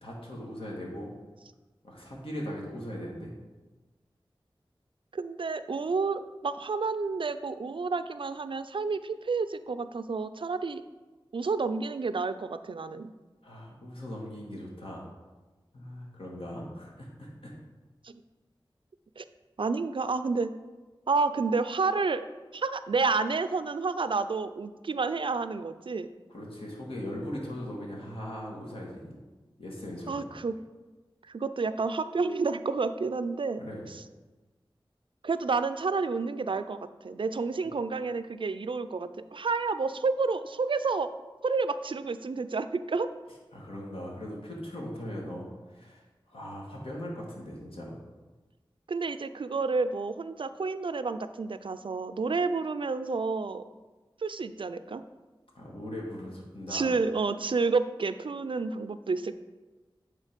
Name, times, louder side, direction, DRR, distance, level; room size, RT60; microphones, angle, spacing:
voice 1, 0.0-1.1 1.8-3.3 13.4-15.1 15.7-17.5 26.3-29.2 29.6-30.3 33.6-33.8 43.5-48.0 55.5-56.9, equal, 75° left, -2 dB, 1.8 m, -39 dB
voice 2, 5.1-10.8 11.3-13.1 18.0-18.2 19.2-19.3 19.6-20.5 21.1-22.3 22.5-26.1 30.1-30.5 31.3-33.6 35.2-36.8 37.0-41.1 41.4-43.1 48.9-53.6 54.2-55.0 56.7-59.3, right 4 dB, 65° right, 11 dB, 0.4 m, -30 dB
9.0 x 3.8 x 5.1 m, 1.2 s
wide cardioid pair, 60°, 9 cm